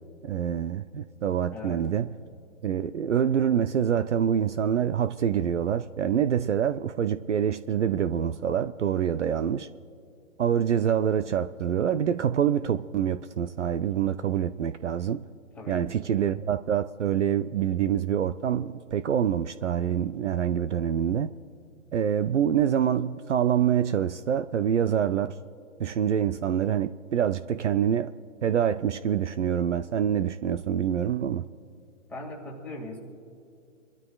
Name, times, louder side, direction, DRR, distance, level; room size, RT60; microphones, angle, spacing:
voice 1, 0.2-2.1 2.6-9.7 10.4-15.2 15.7-21.3 21.9-25.4 25.8-28.1 28.4-31.5, right 9 dB, 60° right, 0.6 m, -26 dB
voice 2, 1.5-1.8 15.5-15.8 32.1-33.0, left 2 dB, 5° left, 2.1 m, -39 dB
26.0 x 12.5 x 2.4 m
hypercardioid pair, 155°, 40 cm